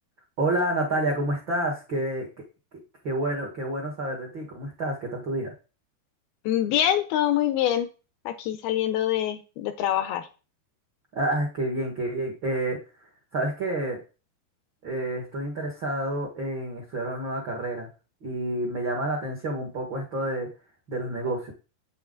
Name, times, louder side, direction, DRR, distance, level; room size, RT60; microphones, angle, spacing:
voice 1, 0.4-2.3 3.0-5.5 11.1-12.8 13.3-14.0 14.8-17.9 18.2-20.5 20.9-21.5, right 1 dB, 60° right, -1 dB, 1.2 m, -29 dB
voice 2, 6.5-7.9 8.3-10.3, left 11 dB, 80° left, 10 dB, 2.4 m, -25 dB
8.4 x 8.0 x 3.8 m, 0.33 s
omnidirectional pair, 4.8 m